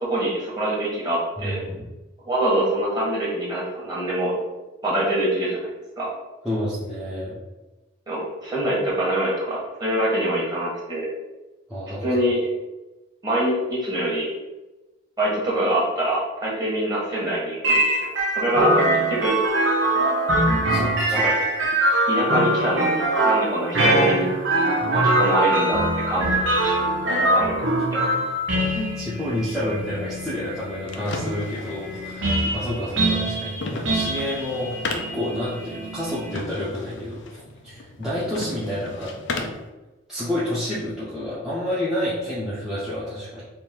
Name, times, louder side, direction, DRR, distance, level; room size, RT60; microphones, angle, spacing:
voice 1, 0.0-1.6 2.2-4.3 4.8-5.7 6.0-6.1 8.1-11.1 12.0-12.4 13.2-14.3 15.2-19.4 21.1-21.4 22.1-25.8 26.1-28.1, right 1 dB, 20° right, -6 dB, 1.4 m, -25 dB
voice 2, 1.4-1.9 6.4-7.4 11.7-12.1 20.7-21.2 28.7-37.2 37.6-39.5 40.1-43.4, left 1 dB, ahead, -12 dB, 0.8 m, -29 dB
sound 1, 17.6-36.3, right 1 dB, 70° right, 0.9 m, -23 dB
sound 2, 30.5-39.7, left 3 dB, 65° left, 0.5 m, -36 dB
3.6 x 2.8 x 4.4 m, 1.1 s
head